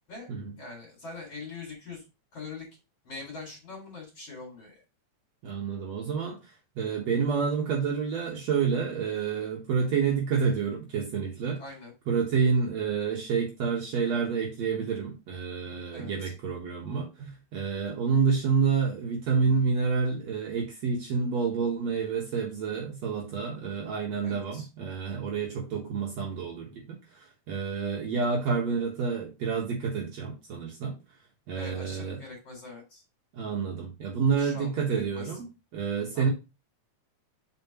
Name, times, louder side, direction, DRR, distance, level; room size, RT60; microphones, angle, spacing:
voice 1, 0.6-2.0 2.3-2.7 3.0-4.8 11.6-11.9 15.9-16.3 24.2-24.7 31.5-33.0 34.4-35.3 36.1-36.3, left 3 dB, 55° left, 3.1 m, -43 dB
voice 2, 5.4-6.4 6.8-11.6 12.1-31.0 31.5-32.2 33.3-35.5 35.7-36.3, right 5 dB, 65° right, 2.5 m, -28 dB
7.6 x 5.1 x 2.9 m
omnidirectional pair, 3.4 m